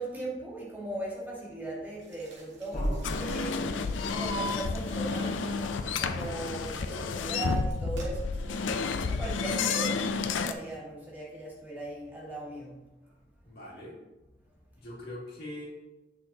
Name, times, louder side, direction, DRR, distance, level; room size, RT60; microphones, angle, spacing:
voice 1, 0.0-8.6 9.1-12.8, right 2 dB, 10° right, -6 dB, 1.8 m, -39 dB
sound 1, 2.0-8.1, right 2 dB, 85° right, 2.2 m, -53 dB
sound 2, 2.7-7.4, equal, 40° left, 1.5 m, -39 dB
sound 3, 3.0-10.5, left 4 dB, 90° left, 0.5 m, -31 dB
voice 2, 13.4-14.0 14.8-15.7, left 1 dB, 55° left, -5 dB, 2.2 m, -42 dB
7.7 x 6.4 x 2.8 m, 1.1 s
head